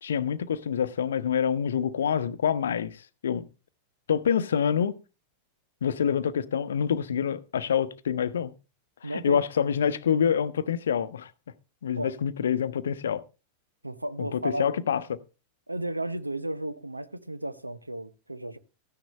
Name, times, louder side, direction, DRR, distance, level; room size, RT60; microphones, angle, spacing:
voice 1, 0.0-3.5 4.1-5.0 5.8-8.5 9.0-11.3 11.8-13.2 14.2-15.2, left 8 dB, 65° left, 0.7 m, -26 dB
voice 2, 9.0-9.4 12.0-12.1 13.8-14.7 15.7-18.6, right 1 dB, 85° right, 0.7 m, -33 dB
13.5 x 10.0 x 3.1 m
figure-of-eight pair, 90°, 0 cm